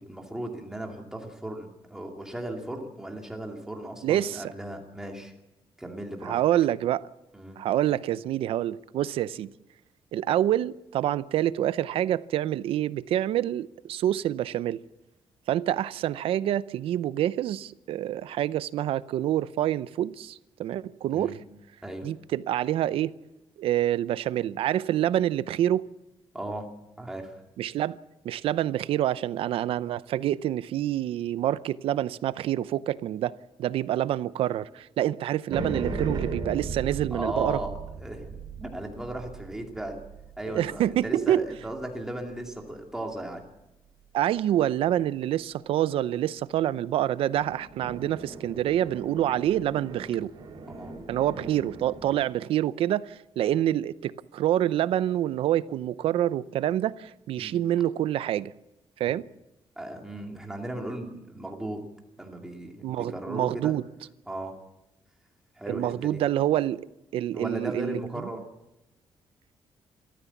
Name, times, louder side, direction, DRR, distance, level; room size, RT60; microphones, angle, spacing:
voice 1, 0.1-5.3 5.8-6.4 7.3-7.6 21.1-21.4 21.8-22.1 26.3-26.7 27.0-27.4 37.1-40.0 40.4-43.4 50.7-51.0 57.4-57.6 59.8-61.8 62.2-63.8 64.3-64.6 65.6-66.2 67.3-68.4, right 1 dB, 5° right, 2.5 m, -36 dB
voice 2, 4.0-4.5 6.2-7.1 7.6-9.5 10.1-14.8 15.5-21.4 22.0-23.1 23.6-25.8 27.6-28.0 28.2-33.3 33.6-37.6 40.5-41.4 44.1-50.3 51.1-58.5 59.0-59.3 62.8-63.8 65.7-66.8 67.1-68.0, right 12 dB, 85° right, 0.6 m, -27 dB
sound 1, 35.5-42.0 47.3-52.2, right 4 dB, 50° right, 4.5 m, -37 dB
28.5 x 14.0 x 7.2 m
wide cardioid pair, 180°, 9 cm